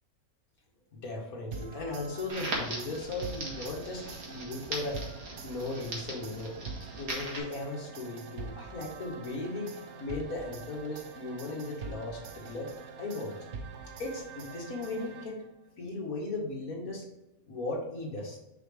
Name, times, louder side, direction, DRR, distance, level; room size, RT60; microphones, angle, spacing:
voice 1, 0.9-5.0 5.4-6.5 7.0-9.7 10.0-12.7 13.0-13.3 14.0-15.4 15.8-17.0 17.5-18.4, left 2 dB, 70° left, -1 dB, 2.0 m, -37 dB
sound 1, 1.5-15.6, right 4 dB, 60° right, 0.9 m, -45 dB
Crackle, 2.3-7.4, right 2 dB, 75° right, 2.1 m, -39 dB
6.1 x 5.2 x 3.4 m, 0.94 s
omnidirectional pair, 1.5 m